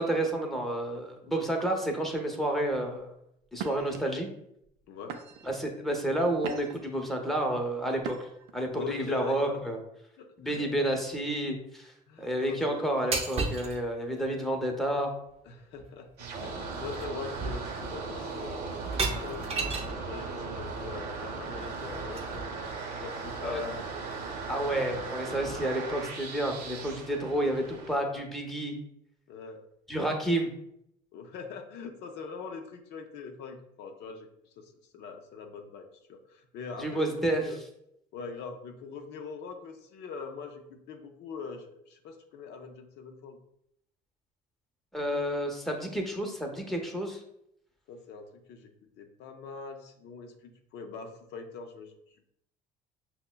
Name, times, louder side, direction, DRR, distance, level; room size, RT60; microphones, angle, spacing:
voice 1, 0.0-3.1 3.5-4.3 5.4-8.3 8.5-9.8 10.4-11.9 12.2-15.1 23.4-23.6 24.5-28.8 29.9-30.5 36.8-37.4 44.9-47.2, right 1 dB, ahead, 2 dB, 0.7 m, -30 dB
sound 1, 2.7-3.0 3.5-4.0 4.6-4.8 5.1-5.6 6.1-6.9 8.0-8.5, right 7 dB, 80° right, 0.4 m, -40 dB
voice 2, 4.9-5.2 8.7-9.6 10.2-10.9 12.1-12.9 15.5-16.1 16.4-18.7 19.1-22.5 23.0-23.8 25.4-25.8 27.3-27.5 29.3-29.6 31.1-34.3 34.6-37.6 38.1-43.4 47.9-48.7 49.0-51.9, left 5 dB, 75° left, 4 dB, 0.5 m, -42 dB
sound 2, 13.1-13.8 15.8-15.9 16.2-16.5 16.9-17.1 17.4-18.0 18.8-20.0 21.6-22.6, right 3 dB, 35° right, 0.6 m, -33 dB
sound 3, 16.2-28.0, right 4 dB, 65° right, 0.9 m, -38 dB
5.4 x 2.1 x 2.2 m, 0.76 s
supercardioid pair, 80°, 18 cm